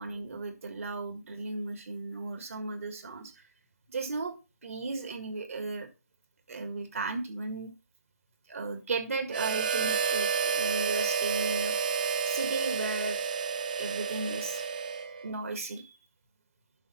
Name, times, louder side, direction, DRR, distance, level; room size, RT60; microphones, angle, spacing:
voice 1, 0.0-3.4 3.9-4.4 4.6-5.9 6.5-7.7 8.5-11.7 12.3-13.2 13.8-14.6 15.2-16.0, right 3 dB, 55° right, 1.9 m, -35 dB
Harmonica, 9.3-15.3, right 6 dB, 30° right, 0.9 m, -30 dB
11.0 x 5.1 x 4.3 m
hypercardioid pair, 175°, 9 cm